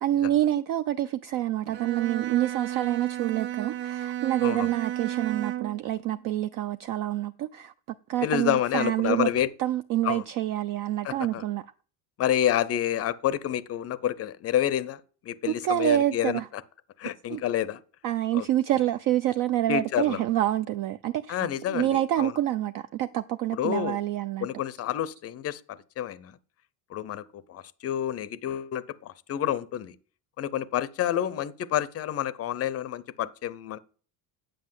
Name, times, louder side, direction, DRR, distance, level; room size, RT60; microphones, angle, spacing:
voice 1, 0.0-7.7 8.1-9.3 9.6-11.6 15.5-16.5 17.3-17.4 18.0-24.5, right 13 dB, 50° right, 0.4 m, -27 dB
Bowed string instrument, 1.7-5.8, right 13 dB, 80° right, 0.9 m, -33 dB
voice 2, 8.2-9.5 10.0-10.2 11.0-11.4 12.2-16.4 17.0-17.8 18.3-18.5 19.7-20.2 21.3-22.3 23.5-24.0 24.4-25.6 26.0-26.4 26.9-30.0 30.4-33.8, left 11 dB, 35° left, 0.5 m, -29 dB
8.9 x 7.6 x 7.6 m
cardioid pair, 165°, 44 cm